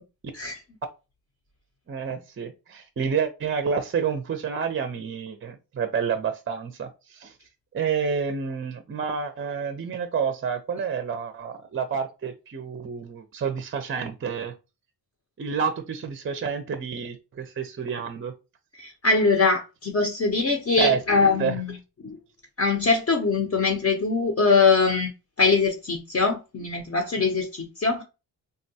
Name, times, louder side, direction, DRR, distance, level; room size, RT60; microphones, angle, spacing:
voice 1, 1.9-7.3 7.7-14.5 15.4-18.3 20.8-21.0 21.4-21.6, right 6 dB, 30° right, 0.5 m, -29 dB
voice 2, 18.8-21.7 22.0-22.2 22.6-25.1 25.4-28.0, left 4 dB, 35° left, 0.7 m, -22 dB
3.5 x 2.2 x 2.7 m
cardioid pair, 80°, 43 cm